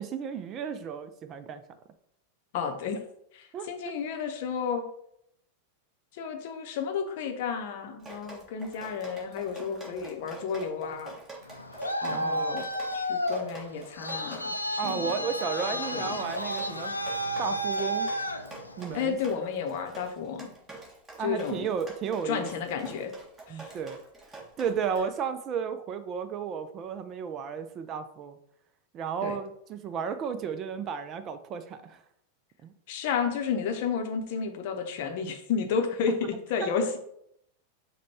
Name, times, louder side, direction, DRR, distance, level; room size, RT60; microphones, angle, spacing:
voice 1, 0.0-1.6 3.5-3.7 12.0-12.7 14.8-16.9 17.4-18.1 18.8-19.2 21.2-22.5 23.5-24.0 24.6-28.4 28.9-32.0 32.6-32.7 36.6-36.7, right 7 dB, 30° right, 11 dB, 0.3 m, -33 dB
voice 2, 2.5-3.0 3.3-4.8 6.1-11.2 12.0-12.7 12.9-15.2 15.9-16.2 18.9-20.5 21.2-21.7 22.2-23.1 23.5-23.7 29.2-29.4 32.9-37.0, left 6 dB, 50° left, 5 dB, 0.7 m, -32 dB
Drip, 8.0-25.0, right 3 dB, 15° right, 1.4 m, -46 dB
Traffic noise roadway noise, 11.4-19.1, equal, 85° left, 0.4 m, -32 dB
5.1 x 2.2 x 4.2 m, 0.73 s
figure-of-eight pair, 90°, 0 cm